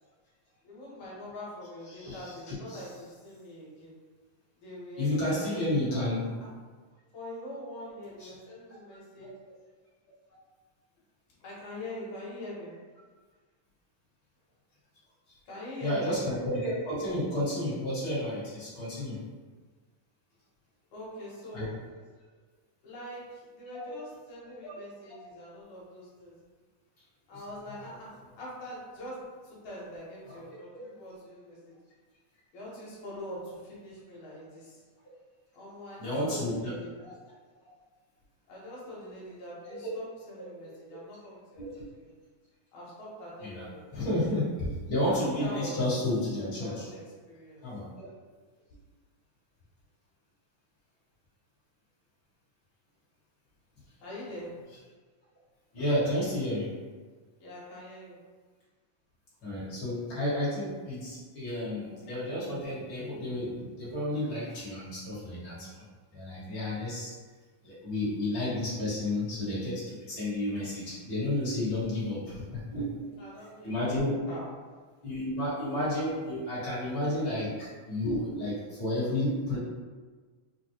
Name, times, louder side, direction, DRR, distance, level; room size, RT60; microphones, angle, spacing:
voice 1, 0.6-3.9 4.6-6.1 6.4-6.5 7.1-9.3 11.4-12.7 15.5-16.1 20.9-21.7 22.8-26.4 27.3-31.7 32.5-34.8 35.5-37.1 38.5-41.6 41.9-42.1 42.7-44.1 45.1-45.8 46.6-47.6 54.0-54.5 57.4-58.2 73.0-73.9 74.3-74.4, left 1 dB, 70° left, -6 dB, 2.4 m, -43 dB
voice 2, 1.9-2.8 5.0-6.4 8.2-8.3 15.8-19.2 21.5-21.7 23.7-23.9 24.6-24.8 25.1-25.2 30.3-30.4 36.0-36.7 39.7-39.9 41.6-41.7 43.4-43.7 43.9-46.9 47.6-47.9 55.7-56.7 59.4-65.8 66.1-67.1 67.6-73.0 73.6-74.1 75.0-79.6, left 1 dB, 45° left, -10 dB, 1.9 m, -31 dB
5.6 x 2.2 x 2.9 m, 1.4 s
omnidirectional pair, 3.7 m